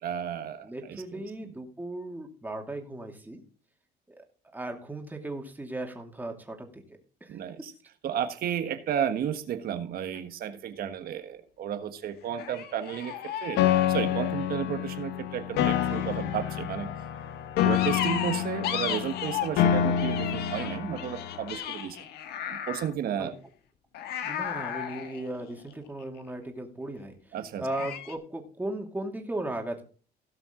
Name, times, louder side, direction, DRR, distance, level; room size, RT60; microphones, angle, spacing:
voice 1, 0.0-1.5 7.3-7.7 8.0-13.6 13.9-16.9 17.6-22.0 22.5-23.4 27.3-27.7, right 9 dB, 65° right, 9 dB, 1.4 m, -33 dB
voice 2, 0.6-3.4 4.5-6.8 7.2-7.3 23.2-23.3 24.2-27.1 27.6-29.8, right 1 dB, 10° right, 2 dB, 2.5 m, -36 dB
sound 1, 10.0-10.2 12.4-14.6 15.5-16.9 17.7-19.6 20.0-22.9 23.9-26.2 27.7-28.2, left 9 dB, 75° left, 1.4 m, -36 dB
Piano, 13.6-21.6, left 10 dB, 90° left, 1.2 m, -28 dB
17.0 x 6.0 x 3.8 m, 0.40 s
cardioid pair, 110°, 17 cm